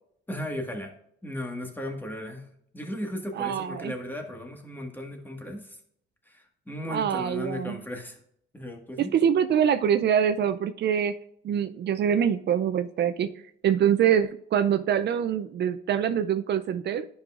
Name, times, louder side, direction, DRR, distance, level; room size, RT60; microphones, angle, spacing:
voice 1, 0.3-0.9 1.2-2.5 2.7-5.8 6.3-8.2 8.5-9.1, left 1 dB, 10° left, 2 dB, 1.6 m, -36 dB
voice 2, 3.4-3.9 6.9-7.8 9.0-11.2 11.4-13.3 13.6-17.1, right 8 dB, 60° right, 10 dB, 0.4 m, -24 dB
10.5 x 5.4 x 2.4 m, 0.70 s
cardioid pair, 90°, 20 cm